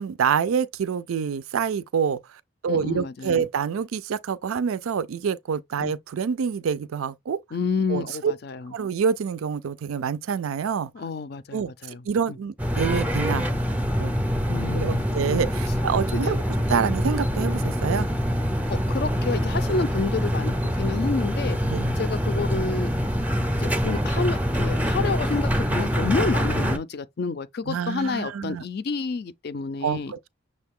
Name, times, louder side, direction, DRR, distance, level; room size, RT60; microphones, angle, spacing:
voice 1, 0.0-2.2 2.6-7.4 7.9-8.3 8.7-10.9 11.5-13.5 14.0-14.1 14.8-16.4 16.7-18.1 21.7-21.9 27.7-28.6 29.8-30.3, right 6 dB, 85° right, 0.4 m, -26 dB
voice 2, 2.7-3.5 5.8-5.9 7.5-8.7 10.9-12.4 14.5-15.1 16.1-16.4 18.7-21.6 22.0-22.9 23.6-30.1, left 4 dB, 50° left, 0.4 m, -29 dB
sound 1, 12.6-26.8, equal, 5° right, 0.5 m, -25 dB
6.4 x 2.3 x 3.5 m
head